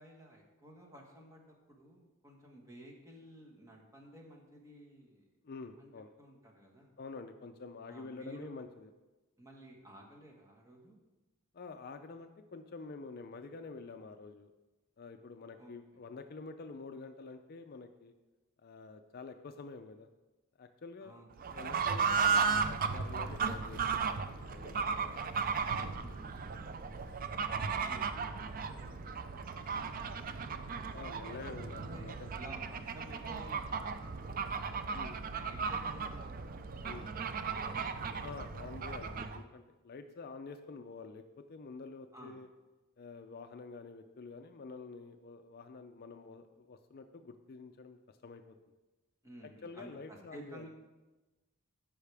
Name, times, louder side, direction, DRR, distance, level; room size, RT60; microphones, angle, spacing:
voice 1, 0.0-5.3 5.8-5.9 6.2-6.9 7.9-8.6 9.4-11.0 15.6-15.7 21.0-21.3 26.0-26.7 27.5-30.9 31.9-34.5 34.9-37.9 42.1-42.4 49.2-50.7, right 1 dB, 15° right, -1 dB, 1.4 m, -54 dB
voice 2, 5.4-6.1 7.0-8.9 11.5-14.5 15.0-18.1 18.6-20.1 20.6-21.2 21.5-23.8 24.1-25.3 30.9-32.3 34.9-35.2 36.8-37.0 38.2-42.5 43.0-48.6 49.4-50.7, left 4 dB, 45° left, 7 dB, 0.4 m, -48 dB
Fowl / Bird, 21.4-39.4, right 5 dB, 40° right, 0.4 m, -35 dB
13.0 x 5.6 x 3.4 m, 1.1 s
head